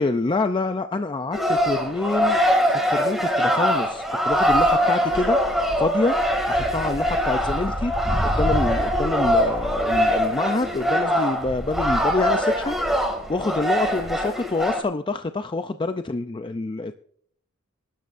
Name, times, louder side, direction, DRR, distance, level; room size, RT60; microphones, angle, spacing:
voice 1, 0.0-2.4 2.7-5.4 5.8-6.2 6.5-7.9 8.2-12.8 13.3-16.9, left 3 dB, 20° left, 8 dB, 0.4 m, -26 dB
sound 1, 1.3-14.8, equal, ahead, 2.4 m, -22 dB
23.5 x 12.0 x 2.6 m, 0.62 s
head